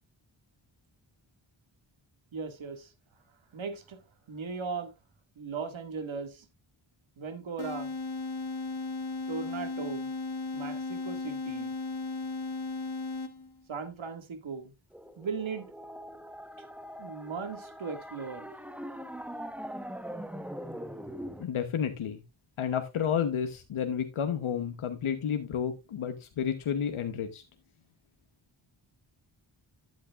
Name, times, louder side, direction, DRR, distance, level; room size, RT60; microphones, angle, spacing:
voice 1, 2.3-2.9 3.5-4.0 4.3-4.9 5.4-6.5 7.2-7.9 9.3-10.1 10.5-11.7 13.7-14.7 15.2-15.7 17.0-18.5, right 5 dB, 70° right, 2.0 m, -37 dB
sound 1, 7.6-13.6, left 3 dB, 55° left, 1.5 m, -36 dB
sound 2, 14.9-21.4, equal, 5° right, 1.1 m, -42 dB
voice 2, 21.4-22.2 22.6-27.4, left 8 dB, 85° left, 1.0 m, -31 dB
12.0 x 8.5 x 2.4 m
cardioid pair, 55°, 48 cm